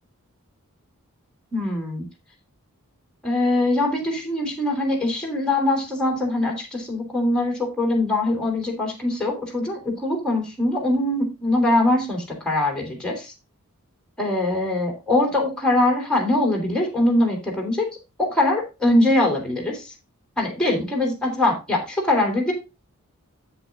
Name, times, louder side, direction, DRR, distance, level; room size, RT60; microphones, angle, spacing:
voice 1, 1.5-2.1 3.2-13.1 14.2-17.9 18.2-19.9 20.4-22.5, left 1 dB, 5° left, 1 dB, 3.5 m, -22 dB
8.9 x 7.7 x 3.7 m, 0.27 s
head